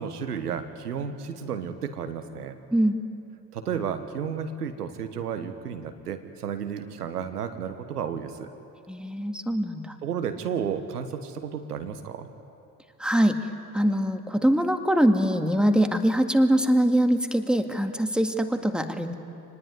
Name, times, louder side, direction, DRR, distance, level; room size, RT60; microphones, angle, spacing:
voice 1, 0.0-2.6 3.5-8.5 10.0-12.3, right 7 dB, 85° right, 9 dB, 1.4 m, -32 dB
voice 2, 8.9-9.9 13.0-13.4 13.7-19.1, equal, ahead, 6 dB, 1.9 m, -23 dB
26.5 x 19.5 x 9.5 m, 2.6 s
hypercardioid pair, 65°, 45 cm